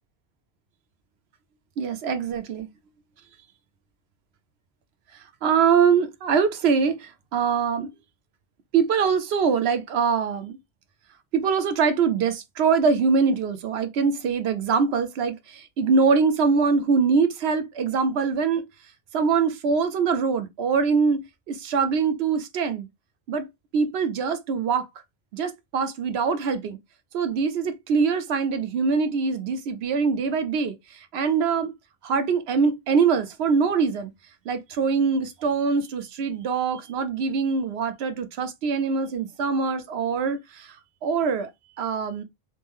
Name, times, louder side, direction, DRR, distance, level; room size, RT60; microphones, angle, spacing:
voice 1, 1.8-2.7 5.4-7.9 8.7-10.6 11.3-18.6 19.1-21.2 21.5-22.9 23.3-23.5 23.7-24.9 25.3-26.8 27.1-31.7 32.0-34.1 34.5-40.8 41.0-41.5 41.8-42.2, right 5 dB, 90° right, 0.9 m, -23 dB
3.0 x 2.1 x 3.4 m
omnidirectional pair, 1.0 m